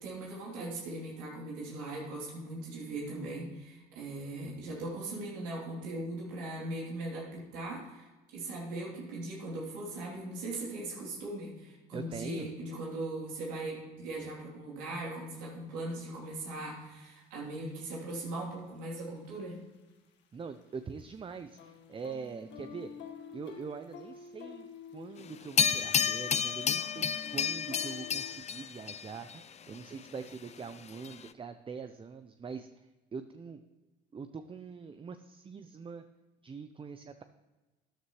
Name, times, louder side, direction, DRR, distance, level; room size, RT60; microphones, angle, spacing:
voice 1, 0.0-19.6, right 2 dB, 90° right, -4 dB, 3.2 m, -39 dB
voice 2, 11.9-12.5 20.3-22.9 23.3-24.7 24.9-33.6 34.1-36.0 36.4-37.2, right 5 dB, 25° right, 9 dB, 0.6 m, -43 dB
sound 1, 15.4-15.5 16.2-16.3 17.0-18.2 18.5-18.8 19.1-20.7 21.0-28.3, left 6 dB, 65° left, 1.5 m, -49 dB
sound 2, 25.6-29.4 31.0-31.1, left 7 dB, 35° left, 0.5 m, -30 dB
12.5 x 9.6 x 3.2 m, 1.2 s
supercardioid pair, 75°, 20 cm